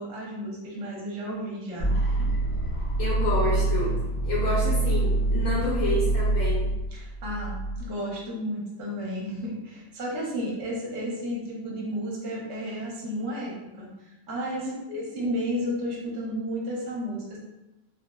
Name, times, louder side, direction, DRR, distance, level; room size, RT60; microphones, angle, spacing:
voice 1, 0.0-1.9 2.2-2.3 6.9-14.6 14.9-17.4, equal, 55° right, -3 dB, 0.9 m, -33 dB
sound 1, 1.8-7.8, right 2 dB, 55° left, 0.8 m, -25 dB
voice 2, 3.0-6.8 14.5-15.2, left 2 dB, 75° left, -5 dB, 1.0 m, -29 dB
3.1 x 2.0 x 2.2 m, 0.98 s
omnidirectional pair, 1.6 m